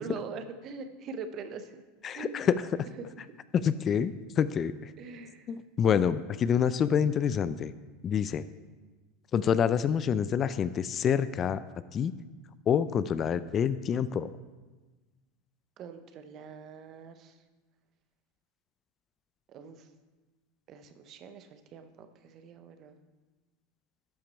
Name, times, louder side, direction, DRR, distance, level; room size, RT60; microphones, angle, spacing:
voice 1, 0.0-1.8 2.1-2.5 3.0-3.4 5.0-5.5 5.8-6.2 15.8-17.4 19.5-19.9 20.7-23.0, right 5 dB, 45° right, 9 dB, 0.9 m, -43 dB
voice 2, 2.0-2.9 3.5-4.9 5.5-7.7 8.0-8.4 9.3-11.6 11.9-12.1 12.7-14.3, left 8 dB, 35° left, 15 dB, 0.4 m, -27 dB
12.0 x 5.8 x 4.4 m, 1.2 s
hypercardioid pair, 80°, 0 cm